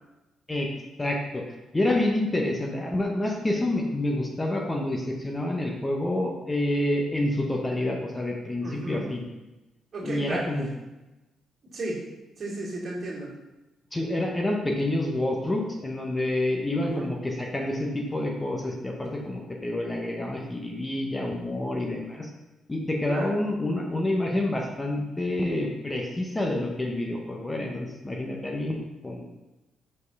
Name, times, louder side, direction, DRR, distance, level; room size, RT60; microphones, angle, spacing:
voice 1, 1.0-1.4 1.7-9.2 10.0-10.7 13.9-22.3 22.7-28.8 29.0-29.3, left 1 dB, 15° left, 1 dB, 1.1 m, -28 dB
voice 2, 8.6-9.1 9.9-10.5 11.7-12.0 12.4-13.3 16.8-17.1 23.0-23.3, right 2 dB, 45° right, -7 dB, 2.5 m, -34 dB
5.4 x 4.4 x 5.5 m, 1.0 s
cardioid pair, 90°, 0 cm